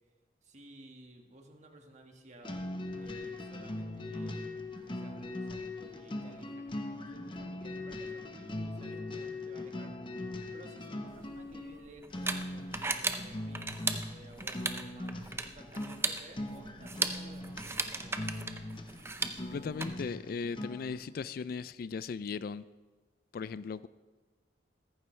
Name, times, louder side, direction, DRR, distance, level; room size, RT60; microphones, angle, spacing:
voice 1, 0.4-2.6 3.0-9.9 10.5-18.2, right 1 dB, 40° right, 3 dB, 1.5 m, -55 dB
sound 1, 2.4-21.0, left 1 dB, 25° left, 0.9 m, -41 dB
sound 2, 11.1-19.8, right 3 dB, 15° right, 0.6 m, -37 dB
voice 2, 19.4-22.7 23.3-23.9, left 5 dB, 55° left, 16 dB, 0.3 m, -37 dB
15.5 x 14.0 x 3.2 m, 1.3 s
head